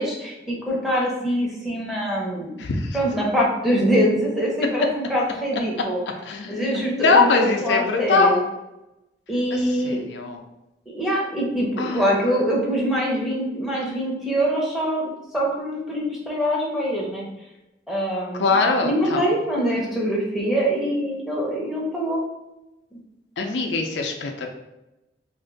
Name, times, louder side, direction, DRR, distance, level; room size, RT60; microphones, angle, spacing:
voice 1, 0.0-2.6 2.9-6.0 6.5-8.4 9.3-10.0 10.9-17.2 17.9-22.2 22.9-23.0, equal, ahead, -4 dB, 0.7 m, -24 dB
voice 2, 2.6-3.0 6.2-8.5 9.5-9.6 9.8-10.4 11.8-12.4 18.4-19.4 23.4-24.5, left 3 dB, 85° left, 3 dB, 0.5 m, -22 dB
2.5 x 2.4 x 3.8 m, 0.94 s
head